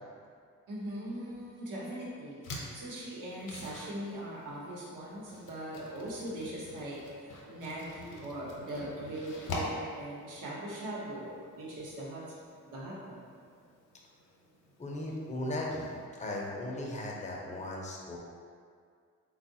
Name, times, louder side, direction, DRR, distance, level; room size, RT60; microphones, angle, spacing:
voice 1, 0.7-12.2 12.6-13.2, right 1 dB, 70° right, -5 dB, 1.0 m, -40 dB
sound 1, 2.4-16.1, left 1 dB, 65° left, 0.8 m, -46 dB
voice 2, 14.8-18.2, left 1 dB, 20° left, -2 dB, 0.6 m, -37 dB
3.5 x 2.3 x 2.7 m, 2.1 s
cardioid pair, 80°, 32 cm